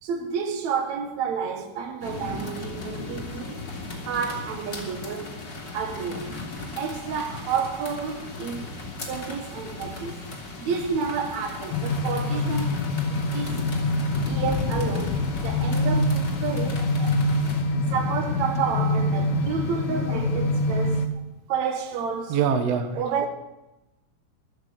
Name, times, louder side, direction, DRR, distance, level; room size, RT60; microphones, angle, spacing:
voice 1, 0.0-3.6 4.0-5.3 5.7-6.3 6.7-8.7 9.1-10.2 10.6-13.7 14.3-16.9 17.8-21.0 21.5-22.4 22.9-23.3, right 6 dB, 65° right, 1.8 m, -30 dB
sound 1, 2.0-17.6, left 2 dB, 30° left, 2.3 m, -36 dB
sound 2, 11.7-21.1, left 2 dB, 85° left, 1.6 m, -25 dB
voice 2, 17.0-17.4 19.3-19.4 22.3-22.9, right 7 dB, 85° right, 1.4 m, -25 dB
14.0 x 7.0 x 9.4 m
omnidirectional pair, 4.7 m